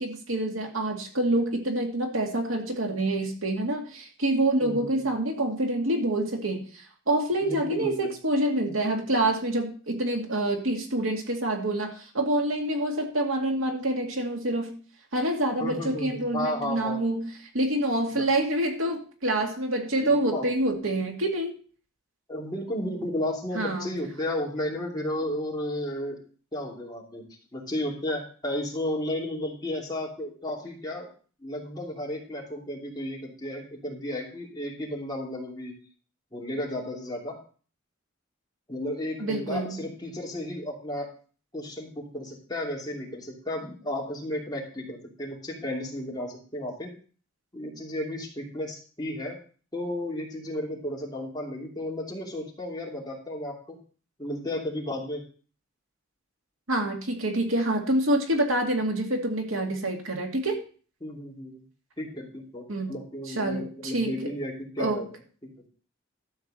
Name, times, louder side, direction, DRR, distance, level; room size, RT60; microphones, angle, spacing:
voice 1, 0.0-14.8 15.1-17.3 17.5-21.5 23.5-23.9 39.2-39.8 56.7-60.6 62.7-62.9 63.3-64.1 64.8-65.0, right 1 dB, 80° right, 2 dB, 2.3 m, -27 dB
voice 2, 4.6-5.1 7.4-8.1 15.6-17.0 18.1-18.2 20.0-20.5 22.3-26.2 26.5-31.1 31.4-35.7 36.3-37.4 38.7-41.1 41.5-46.9 47.5-49.4 49.7-53.8 54.2-55.2 61.0-61.6 62.0-65.1, left 1 dB, 20° left, -2 dB, 2.8 m, -33 dB
12.5 x 4.8 x 7.6 m, 0.40 s
head